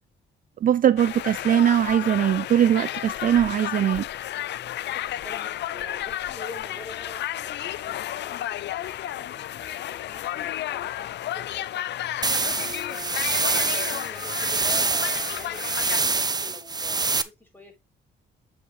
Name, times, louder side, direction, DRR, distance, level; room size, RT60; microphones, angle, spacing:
voice 1, 0.6-4.1, right 10 dB, 45° right, 0.4 m, -21 dB
sound 1, 1.0-16.0, left 12 dB, 65° left, 0.5 m, -32 dB
voice 2, 5.2-11.1 11.3-11.9 12.5-17.8, left 1 dB, 10° left, 6.9 m, -45 dB
sound 2, 12.2-17.2, right 4 dB, 20° right, 0.8 m, -25 dB
8.3 x 7.2 x 3.2 m
cardioid pair, 90°, 20 cm